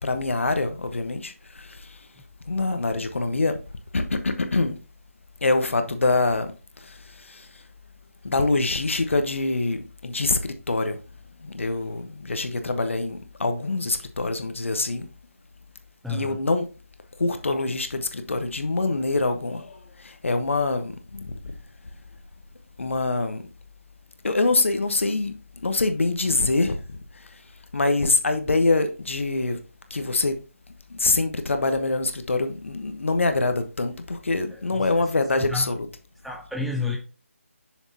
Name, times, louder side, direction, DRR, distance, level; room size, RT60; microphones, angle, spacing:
voice 1, 0.0-2.1 2.5-3.6 3.9-4.8 5.4-6.5 6.8-7.6 8.2-11.0 11.4-15.1 16.1-16.7 17.2-21.3 22.8-23.5 24.2-25.3 25.6-27.3 27.7-29.6 29.9-30.4 30.9-35.9, left 3 dB, 65° left, 1.1 m, -25 dB
voice 2, 16.0-16.4 34.5-34.9 35.3-35.7 36.2-37.0, left 3 dB, ahead, 0.4 m, -31 dB
6.9 x 6.4 x 2.8 m
figure-of-eight pair, 155°, 7 cm